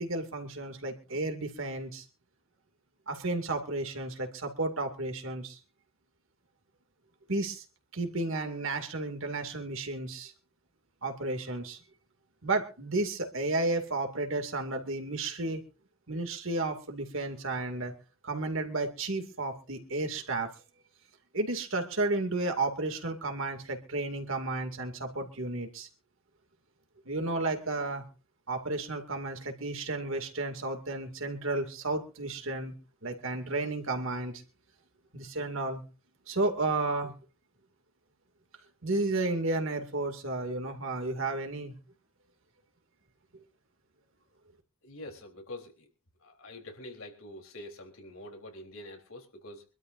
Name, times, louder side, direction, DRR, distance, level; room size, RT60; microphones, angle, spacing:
voice 1, 0.0-2.0 3.1-5.6 7.3-7.6 7.9-10.3 11.0-11.8 12.4-15.6 16.1-17.9 18.2-20.5 21.3-25.9 27.1-28.0 28.5-32.7 33.0-34.4 35.1-35.8 36.3-37.1 38.8-41.8, right 2 dB, 60° right, 5 dB, 2.4 m, -32 dB
voice 2, 44.8-45.9 46.2-49.6, left 1 dB, 70° left, 3 dB, 3.7 m, -46 dB
25.0 x 12.5 x 2.6 m, 0.34 s
head